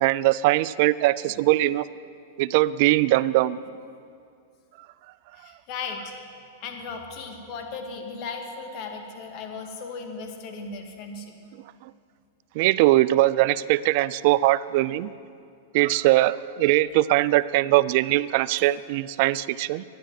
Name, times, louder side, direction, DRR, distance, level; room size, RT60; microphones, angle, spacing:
voice 1, 0.0-1.9 2.4-3.6 11.8-11.9 12.5-15.1 15.7-19.8, right 17 dB, 55° right, 17 dB, 0.4 m, -21 dB
voice 2, 5.3-6.2 6.6-11.3, left 4 dB, 45° left, 4 dB, 2.0 m, -36 dB
12.5 x 10.0 x 9.5 m, 2.3 s
hypercardioid pair, 130°, 0 cm